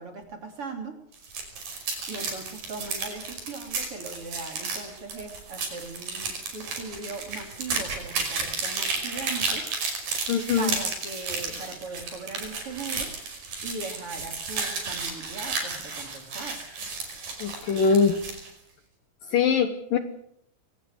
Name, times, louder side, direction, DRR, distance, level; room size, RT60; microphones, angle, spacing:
voice 1, 0.0-1.3 2.1-9.6 10.0-10.2 10.6-13.1 13.6-16.6, right 3 dB, 35° right, 5 dB, 3.4 m, -39 dB
sound 1, 1.1-18.5, right 4 dB, 55° right, 7.0 m, -33 dB
voice 2, 10.3-10.7 17.4-18.2 19.3-20.0, left 6 dB, 65° left, 9 dB, 2.5 m, -22 dB
23.5 x 18.0 x 8.1 m, 0.71 s
omnidirectional pair, 5.0 m